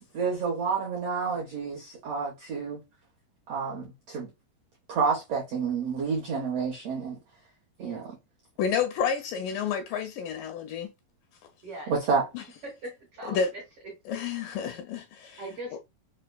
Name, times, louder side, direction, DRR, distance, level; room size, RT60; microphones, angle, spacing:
voice 1, 0.1-2.8 3.5-4.3 4.9-7.2 7.8-8.0 11.9-12.3, right 5 dB, 75° right, 1.4 m, -29 dB
voice 2, 8.6-10.9 12.3-12.4 13.2-13.5 14.1-15.4, left 7 dB, 80° left, 2.0 m, -30 dB
voice 3, 11.6-11.9 12.6-13.4 13.8-13.9 15.4-15.8, right 1 dB, 60° right, 1.6 m, -40 dB
5.5 x 2.1 x 2.2 m
omnidirectional pair, 4.1 m